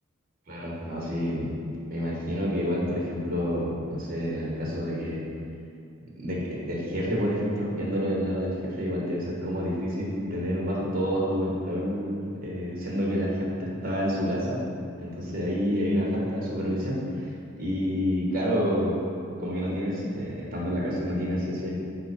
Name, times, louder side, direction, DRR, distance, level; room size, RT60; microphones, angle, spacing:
voice 1, 0.5-1.5 1.9-5.3 6.2-14.6 15.0-17.3 17.6-19.0 19.4-21.7, equal, 45° right, -4 dB, 1.4 m, -28 dB
5.8 x 4.7 x 4.8 m, 2.4 s
head